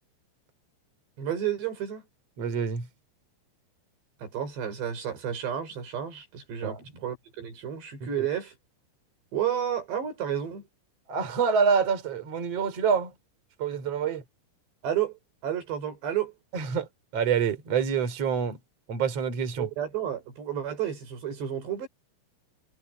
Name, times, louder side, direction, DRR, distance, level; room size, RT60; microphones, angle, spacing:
voice 1, 1.2-2.0 4.2-8.5 9.3-10.6 14.8-15.1 15.4-16.3 19.6-21.9, right 10 dB, 55° right, 7.9 m, -31 dB
voice 2, 2.4-2.9 6.6-6.8 11.1-13.1 13.6-14.2 16.5-16.9 17.1-18.6 18.9-19.7, right 6 dB, 30° right, 4.5 m, -26 dB
omnidirectional pair, 5.9 m